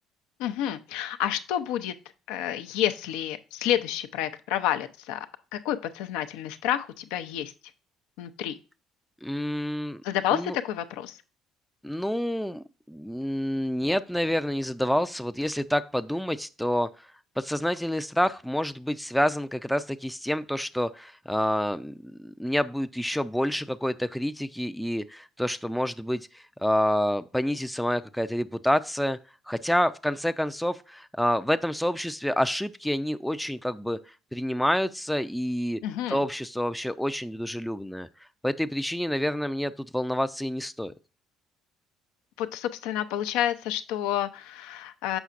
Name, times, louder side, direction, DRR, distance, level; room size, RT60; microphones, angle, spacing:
voice 1, 0.4-1.9 2.3-5.3 5.5-7.5 8.2-8.6 10.0-11.2 35.8-36.2 42.4-45.2, left 11 dB, 75° left, 10 dB, 0.5 m, -29 dB
voice 2, 9.2-10.0 10.3-10.6 11.8-16.9 17.4-29.2 29.5-34.0 34.3-35.8 36.1-38.1 38.4-40.9, equal, 5° left, 10 dB, 0.4 m, -28 dB
7.0 x 5.6 x 2.5 m, 0.34 s
hypercardioid pair, 55°, 0 cm